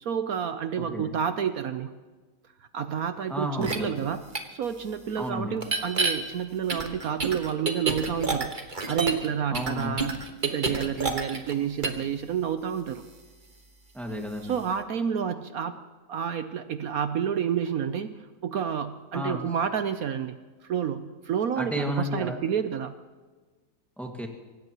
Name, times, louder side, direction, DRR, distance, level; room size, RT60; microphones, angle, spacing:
voice 1, 0.0-1.9 2.7-4.2 4.5-8.5 8.9-10.1 10.4-13.0 14.4-15.7 16.1-20.4 20.6-22.9, right 8 dB, 65° right, 10 dB, 1.0 m, -29 dB
voice 2, 0.8-1.1 3.3-4.1 5.2-5.6 9.5-10.0 13.9-14.6 19.1-19.4 21.6-22.4 24.0-24.3, equal, ahead, 1 dB, 1.7 m, -32 dB
sound 1, 3.6-3.8 4.3-4.4 5.6-6.1 6.7-9.3 9.5-11.5 11.8-12.0, right 4 dB, 30° right, 1.4 m, -28 dB
24.0 x 17.5 x 3.0 m, 1.3 s
omnidirectional pair, 1.9 m